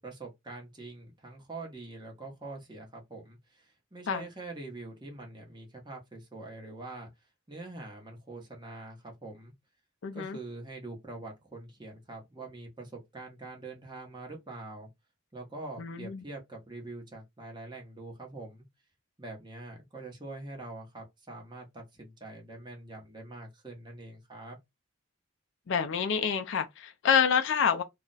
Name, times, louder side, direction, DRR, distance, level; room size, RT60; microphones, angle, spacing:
voice 1, 0.0-7.1 7.5-9.5 10.1-14.9 15.3-18.6 19.2-24.6, right 2 dB, 20° right, 0.8 m, -44 dB
voice 2, 10.0-10.4 15.8-16.2 25.7-27.8, left 7 dB, 60° left, 0.4 m, -27 dB
2.3 x 2.1 x 3.8 m
head